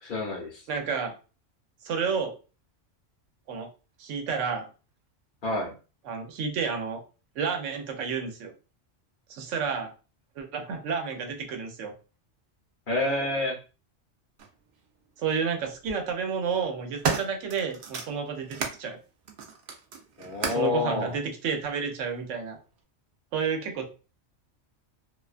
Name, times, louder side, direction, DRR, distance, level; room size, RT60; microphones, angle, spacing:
voice 1, 0.0-0.6 5.4-5.7 12.9-13.6 20.2-21.2, left 2 dB, 50° left, 0 dB, 0.7 m, -28 dB
voice 2, 0.7-1.1 1.8-2.4 3.5-3.7 4.0-4.7 6.1-7.0 7.4-8.5 9.3-9.9 10.4-11.9 15.2-19.0 20.5-22.6 23.3-23.9, right 6 dB, 85° right, 4 dB, 0.9 m, -30 dB
sound 1, 14.4-14.5 15.6-16.0 16.5-18.8 19.3-20.8 21.6-21.7, right 5 dB, 60° right, 0.6 m, -33 dB
2.4 x 2.2 x 2.4 m, 0.34 s
omnidirectional pair, 1.2 m